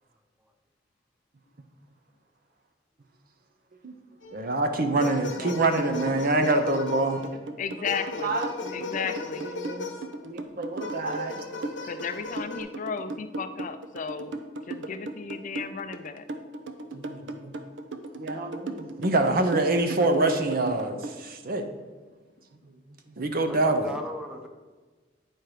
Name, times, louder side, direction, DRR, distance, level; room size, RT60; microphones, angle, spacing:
sound 1, 4.2-4.6 5.0-7.4 7.8-10.1 10.8-12.6, left 3 dB, 85° left, 0.8 m, -37 dB
voice 1, 4.3-7.3 8.2-9.1 9.4-9.9 10.2-11.4 16.9-17.5 18.2-21.6 23.2-23.9, right 2 dB, 55° right, 7 dB, 0.8 m, -26 dB
voice 2, 4.8-5.5 5.9-6.2 7.6-8.4 8.7-9.5 11.8-14.4 14.7-16.3, left 6 dB, 45° left, 10 dB, 0.4 m, -35 dB
sound 2, 5.8-21.2, right 2 dB, 90° right, 0.6 m, -37 dB
voice 3, 23.5-24.5, left 1 dB, 5° right, 4 dB, 0.8 m, -37 dB
9.1 x 4.5 x 4.9 m, 1.3 s
head